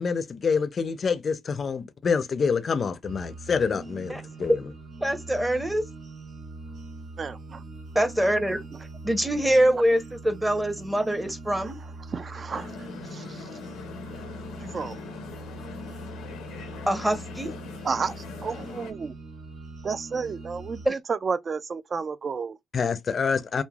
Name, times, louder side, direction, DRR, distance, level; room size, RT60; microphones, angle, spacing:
voice 1, 0.0-4.5 22.7-23.6, left 5 dB, 45° left, 0.5 m, -26 dB
sound 1, 3.0-20.9, right 2 dB, 75° right, 1.4 m, -42 dB
voice 2, 5.0-5.9 7.9-8.6 9.0-11.8 16.9-17.5 20.8-21.0, right 1 dB, 10° right, 0.7 m, -24 dB
voice 3, 7.2-7.6 12.1-12.7 13.1-13.4 14.7-15.0 17.8-19.1 19.8-22.6, right 5 dB, 40° right, 0.3 m, -31 dB
sound 2, 12.5-18.9, left 5 dB, 90° left, 0.6 m, -41 dB
3.1 x 2.1 x 2.3 m
cardioid pair, 90°, 0 cm